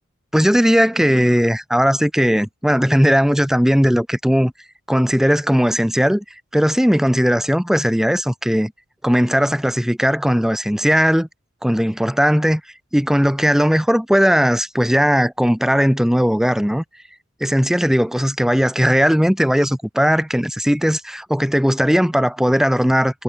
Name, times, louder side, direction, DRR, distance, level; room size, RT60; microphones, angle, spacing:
voice 1, 0.3-4.5 4.9-6.2 6.5-8.7 9.0-11.3 11.6-12.6 12.9-16.8 17.4-23.2, equal, ahead, 0.9 m, -17 dB
head